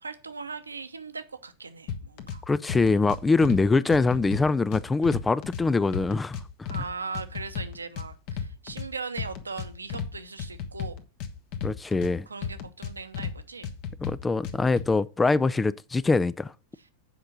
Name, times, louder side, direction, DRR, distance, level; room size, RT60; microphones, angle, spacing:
voice 1, 0.0-2.4 6.7-11.0 12.3-13.7, right 4 dB, 75° right, 0.9 m, -39 dB
sound 1, 1.9-2.4 2.7-3.6 3.9-5.6 5.9-6.8 7.1-8.9 9.2-10.1 10.4-12.1 12.4-13.3 13.6-14.8, left 7 dB, 45° left, 1.2 m, -33 dB
voice 2, 2.5-6.7 11.6-12.3 14.0-16.5, left 3 dB, 10° left, 0.3 m, -24 dB
7.9 x 5.5 x 6.2 m
figure-of-eight pair, 90°, 0 cm